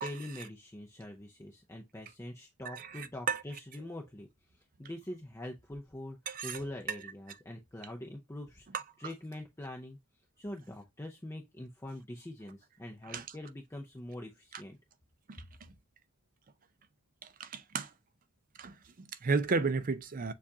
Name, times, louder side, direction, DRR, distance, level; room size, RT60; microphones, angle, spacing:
voice 1, 0.0-4.3 4.8-6.2 6.4-8.7 9.0-10.0 10.4-14.8, left 1 dB, 10° left, 0.5 m, -44 dB
voice 2, 2.7-3.4 6.3-6.6 8.7-8.8 13.1-13.3 14.5-14.6 15.3-15.4 17.2-17.9 18.6-20.3, right 4 dB, 40° right, 0.5 m, -33 dB
7.0 x 2.4 x 2.7 m
head